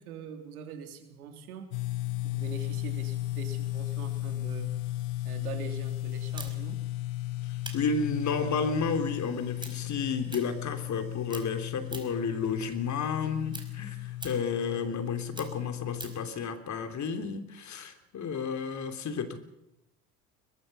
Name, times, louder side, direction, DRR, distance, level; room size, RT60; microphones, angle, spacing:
voice 1, 0.0-1.7 2.2-4.7 5.2-6.8, right 6 dB, 80° right, 6 dB, 3.5 m, -42 dB
sound 1, 1.7-16.3, left 17 dB, 70° left, 0.9 m, -35 dB
sound 2, 6.4-11.0 11.3-12.3 12.7-16.3, right 2 dB, 10° right, 5.0 m, -46 dB
voice 2, 7.7-19.4, left 5 dB, 40° left, 8 dB, 3.3 m, -32 dB
22.5 x 22.0 x 5.6 m, 0.87 s
hypercardioid pair, 75°, 43 cm